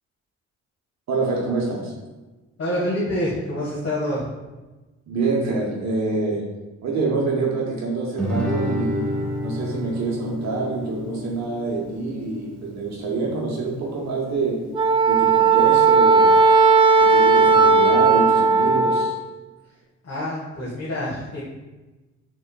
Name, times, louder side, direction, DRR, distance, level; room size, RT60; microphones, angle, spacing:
voice 1, 1.1-1.9 5.1-6.4 6.8-14.6 15.1-16.4 17.0-19.2, right 3 dB, 65° right, -2 dB, 0.9 m, -26 dB
voice 2, 2.6-4.2 20.0-21.4, left 1 dB, 55° left, -8 dB, 1.5 m, -26 dB
Guitar, 8.2-13.2, equal, 5° left, 1.1 m, -30 dB
Wind instrument woodwind instrument, 14.7-19.2, right 4 dB, 20° right, 0.3 m, -15 dB
5.3 x 3.7 x 2.2 m, 1.2 s
cardioid pair, 90°, 30 cm